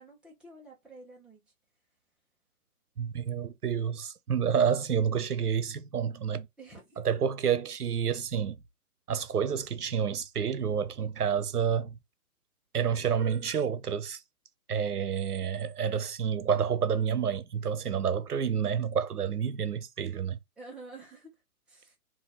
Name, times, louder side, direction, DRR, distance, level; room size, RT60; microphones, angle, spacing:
voice 1, 0.0-1.5 6.6-7.0 20.6-21.3 21.7-22.0, right 2 dB, ahead, 0.9 m, -49 dB
voice 2, 3.0-6.5 7.0-8.6 9.1-12.0 12.7-14.2 14.7-20.4, right 7 dB, 85° right, 0.8 m, -29 dB
4.0 x 2.6 x 4.0 m
hypercardioid pair, 140°, 45 cm